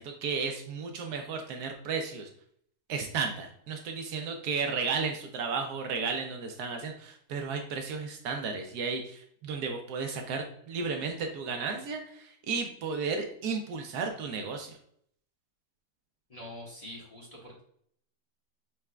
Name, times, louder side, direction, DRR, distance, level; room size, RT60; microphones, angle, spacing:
voice 1, 0.0-2.3 2.9-14.7, right 5 dB, 75° right, 4 dB, 1.1 m, -33 dB
voice 2, 16.3-17.6, left 1 dB, 25° left, -5 dB, 1.2 m, -45 dB
6.0 x 3.2 x 2.2 m, 0.66 s
omnidirectional pair, 1.8 m